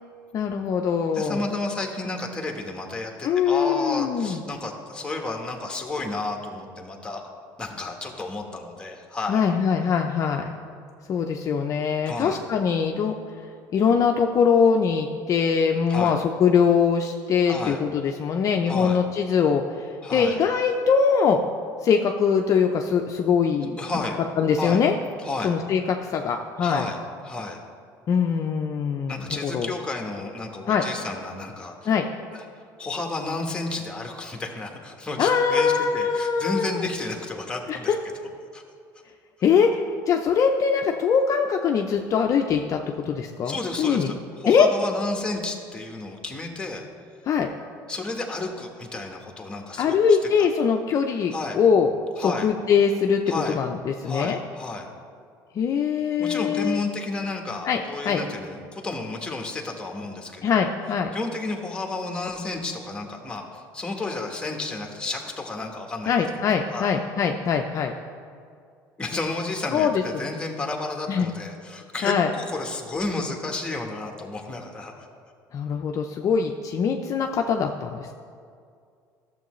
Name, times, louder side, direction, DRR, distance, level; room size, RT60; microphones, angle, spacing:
voice 1, 0.3-1.4 3.2-4.4 9.3-10.6 11.1-13.5 13.7-21.4 21.8-23.8 24.4-24.9 25.4-26.9 28.1-29.7 30.7-30.8 31.9-32.1 35.2-36.8 37.7-38.0 39.4-44.1 44.5-44.7 47.2-47.5 49.8-53.2 53.5-54.4 55.5-56.8 57.6-58.2 60.4-61.1 66.1-67.9 69.7-70.3 71.1-71.3 72.0-72.3 75.5-78.1, left 6 dB, 45° left, 3 dB, 0.5 m, -22 dB
voice 2, 1.1-7.2 7.6-9.4 12.0-12.4 15.9-16.1 17.5-17.8 18.7-19.0 20.0-20.4 23.8-24.2 24.6-24.8 25.2-25.5 26.6-27.0 27.2-27.6 29.1-31.8 32.3-32.4 32.8-37.9 38.5-38.6 43.4-46.9 47.9-50.0 51.3-51.6 52.2-52.5 53.3-53.6 54.0-54.9 56.2-60.7 61.1-66.1 66.7-66.9 69.0-75.1, left 2 dB, 10° left, 2 dB, 1.1 m, -32 dB
12.0 x 7.1 x 3.1 m, 2.3 s
cardioid pair, 110°, 8 cm